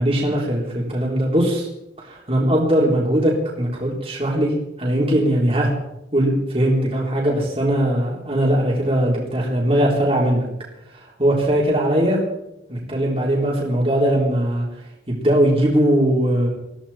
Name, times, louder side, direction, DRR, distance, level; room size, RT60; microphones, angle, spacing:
voice 1, 0.0-1.7 2.0-4.5 4.8-5.7 6.1-10.5 10.9-12.2 12.7-14.7 15.1-16.5, right 1 dB, 30° right, -4 dB, 3.8 m, -20 dB
21.0 x 15.5 x 4.3 m, 0.89 s
head